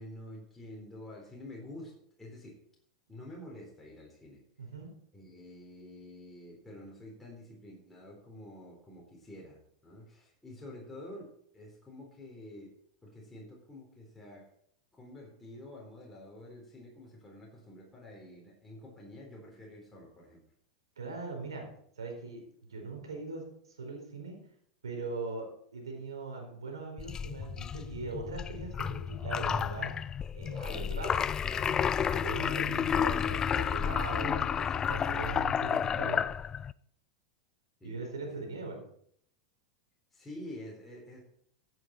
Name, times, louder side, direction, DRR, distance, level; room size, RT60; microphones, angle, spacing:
voice 1, 0.0-2.6 3.1-4.4 5.1-12.7 13.0-14.5 14.9-20.4 37.8-38.4 40.1-41.2, left 1 dB, 10° left, -3 dB, 4.1 m, -48 dB
voice 2, 4.6-4.9 21.0-21.6 22.0-23.4 23.8-24.3 24.8-29.9 30.3-36.3 37.8-38.8, right 3 dB, 85° right, 1 dB, 4.3 m, -40 dB
sound 1, 27.0-36.7, left 8 dB, 25° left, 0.4 m, -31 dB
15.0 x 7.8 x 4.4 m, 0.66 s
hypercardioid pair, 95°, 3 cm